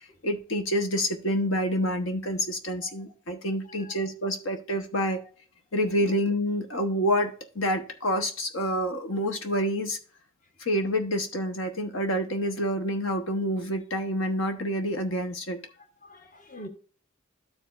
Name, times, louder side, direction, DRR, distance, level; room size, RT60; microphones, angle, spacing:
voice 1, 0.2-5.2 5.7-10.0 10.6-15.6, equal, 65° left, 1.1 m, -28 dB
voice 2, 16.0-16.7, equal, 40° left, 1.1 m, -45 dB
13.0 x 5.0 x 2.5 m
head